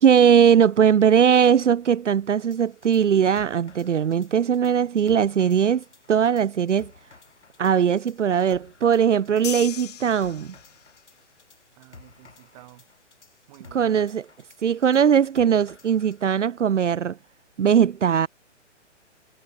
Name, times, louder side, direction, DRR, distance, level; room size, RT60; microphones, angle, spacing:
voice 1, 0.0-6.9 7.6-10.5 13.7-14.2 14.6-17.2 17.6-18.3, right 8 dB, 75° right, 0.6 m, -20 dB
sound 1, 2.5-16.2, left 4 dB, 70° left, 7.0 m, -53 dB
sound 2, 9.4-11.0, left 12 dB, 35° left, 0.9 m, -36 dB
voice 2, 11.8-12.9 13.5-14.0, right 23 dB, 30° right, 4.7 m, -50 dB
figure-of-eight pair, 130°, 37 cm